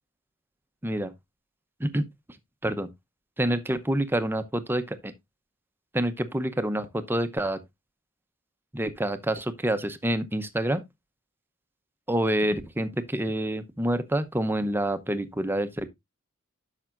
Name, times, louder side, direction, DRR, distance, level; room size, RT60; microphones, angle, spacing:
voice 1, 3.4-5.1 5.9-7.6 8.7-10.8 12.1-15.9, right 1 dB, 10° right, 0.7 m, -27 dB
10.5 x 6.6 x 2.4 m
head